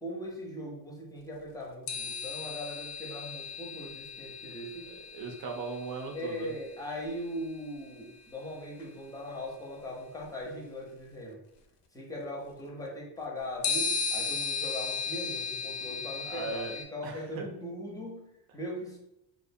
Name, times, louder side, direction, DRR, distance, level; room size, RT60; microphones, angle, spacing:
voice 1, 0.0-4.9 6.1-11.4 11.9-19.0, equal, 10° left, -3 dB, 0.6 m, -40 dB
sound 1, 1.9-7.5 8.8-8.9 13.6-16.8, left 5 dB, 75° left, 0.6 m, -36 dB
voice 2, 4.9-6.5 16.2-16.8 17.0-17.4, right 4 dB, 60° right, 2 dB, 0.6 m, -38 dB
2.4 x 2.1 x 2.6 m, 0.85 s
cardioid pair, 120°, 41 cm